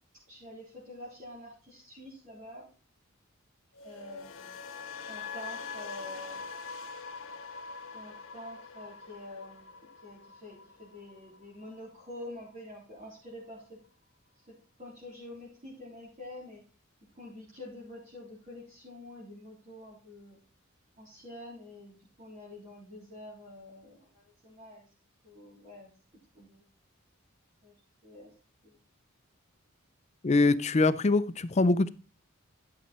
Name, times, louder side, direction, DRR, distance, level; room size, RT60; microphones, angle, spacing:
voice 1, 0.3-2.7 3.8-4.6 5.1-6.4 7.9-13.8 14.8-16.6 17.1-20.4 21.0-24.8 25.2-25.9 26.4-26.6 27.6-27.7 28.0-28.3 28.6-28.8, left 1 dB, 35° right, 3.6 m, -47 dB
sound 1, 3.7-11.9 12.1-12.5, left 5 dB, 70° left, 1.3 m, -44 dB
voice 2, 30.2-31.9, left 3 dB, 35° left, 0.5 m, -24 dB
11.5 x 6.7 x 4.2 m
head